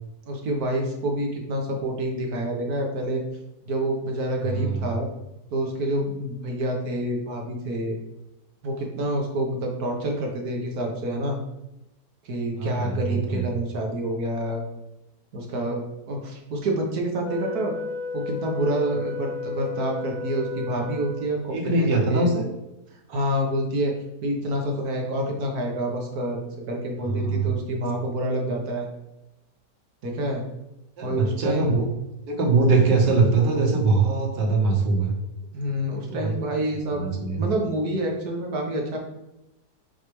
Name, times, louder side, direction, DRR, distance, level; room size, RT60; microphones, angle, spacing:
voice 1, 0.3-3.2 3.7-5.1 5.5-8.0 8.6-11.4 12.2-14.6 15.3-17.7 18.1-22.3 23.1-23.9 24.2-28.9 30.0-30.4 31.0-31.7 35.5-37.0 37.4-39.0, right 1 dB, 60° right, 1 dB, 1.7 m, -27 dB
voice 2, 4.4-4.9 12.6-13.5 21.5-22.4 27.0-27.6 31.0-31.8 32.3-35.1 36.0-36.4 36.9-37.4, right 3 dB, 90° right, 0 dB, 1.9 m, -22 dB
Wind instrument woodwind instrument, 17.2-21.6, left 3 dB, 85° left, 1.5 m, -33 dB
6.4 x 4.8 x 3.2 m, 0.90 s
omnidirectional pair, 1.8 m